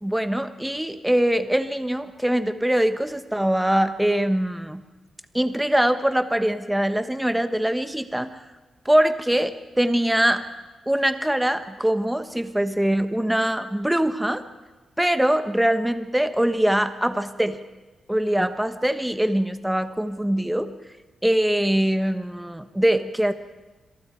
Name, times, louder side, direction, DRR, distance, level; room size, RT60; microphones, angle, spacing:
voice 1, 0.0-4.8 5.3-8.4 8.8-10.4 10.9-14.4 15.0-17.6 18.1-20.7 21.2-23.3, right 1 dB, 5° right, 10 dB, 1.2 m, -23 dB
27.0 x 22.5 x 4.6 m, 1.2 s
cardioid pair, 115°, 0 cm